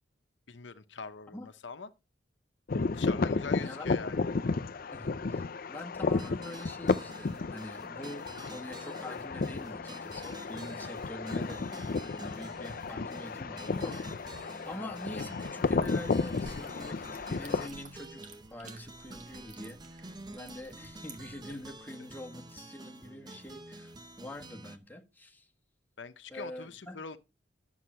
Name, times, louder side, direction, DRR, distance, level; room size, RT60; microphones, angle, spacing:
voice 1, 0.5-1.9 2.9-4.3 26.0-27.2, left 5 dB, 80° left, 0.9 m, -43 dB
sound 1, 2.7-17.7, left 4 dB, 50° left, 0.5 m, -33 dB
voice 2, 4.9-11.9 12.2-14.4 14.6-18.2 18.5-25.5 26.3-27.0, left 1 dB, 10° left, 1.4 m, -45 dB
sound 2, 6.2-24.8, right 2 dB, 20° right, 0.8 m, -49 dB
sound 3, 15.6-21.8, right 2 dB, 40° right, 1.8 m, -53 dB
11.5 x 7.2 x 4.4 m
head